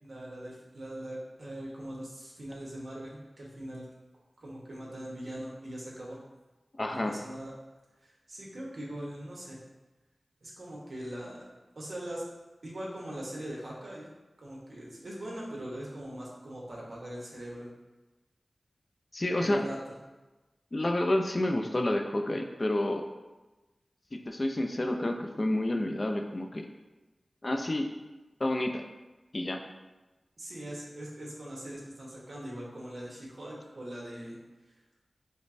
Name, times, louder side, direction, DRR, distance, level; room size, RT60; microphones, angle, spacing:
voice 1, 0.0-3.9 4.4-6.2 6.9-7.5 8.0-9.6 10.4-11.4 11.7-12.2 12.6-14.1 14.4-17.7 19.4-20.0 30.4-34.4, right 1 dB, 70° right, -4 dB, 0.9 m, -41 dB
voice 2, 6.8-7.1 19.1-19.6 20.7-23.0 24.1-26.7 27.4-27.9 28.4-28.8 29.3-29.6, left 1 dB, 40° left, 4 dB, 0.3 m, -29 dB
5.1 x 2.1 x 2.6 m, 1.1 s
wide cardioid pair, 70°, 0 cm